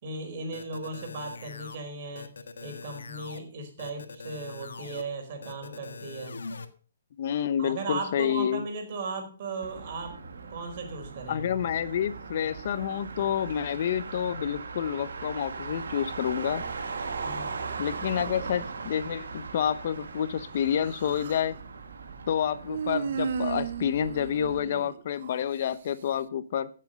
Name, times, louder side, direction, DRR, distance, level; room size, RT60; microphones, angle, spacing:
voice 1, 0.0-6.4 7.6-11.5 17.2-17.5, right 3 dB, 45° right, 4 dB, 4.5 m, -37 dB
sound 1, 0.5-1.8 2.2-3.4 3.8-5.0 5.4-6.7, left 4 dB, 85° left, 1.5 m, -42 dB
voice 2, 7.2-8.6 11.3-16.6 17.8-21.6 22.3-26.7, left 9 dB, 50° left, 15 dB, 0.8 m, -29 dB
Motor vehicle (road), 9.6-24.6, right 4 dB, 80° right, 2.2 m, -39 dB
Human voice, 20.6-21.5 22.7-25.4, right 7 dB, 60° right, 0.7 m, -34 dB
15.0 x 7.6 x 5.3 m, 0.39 s
hypercardioid pair, 155°, 0 cm